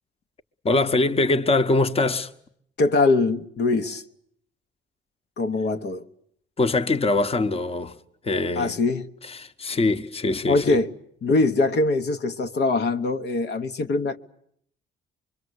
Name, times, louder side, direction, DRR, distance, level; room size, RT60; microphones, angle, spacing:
voice 1, 0.6-2.3 6.6-8.0 8.2-8.7 9.3-10.8, left 2 dB, 30° left, 1.1 m, -23 dB
voice 2, 2.8-4.0 5.4-6.1 8.6-9.1 10.5-10.9 11.2-14.2, left 3 dB, 60° left, 1.1 m, -22 dB
25.0 x 23.0 x 8.0 m
cardioid pair, 90°, 20 cm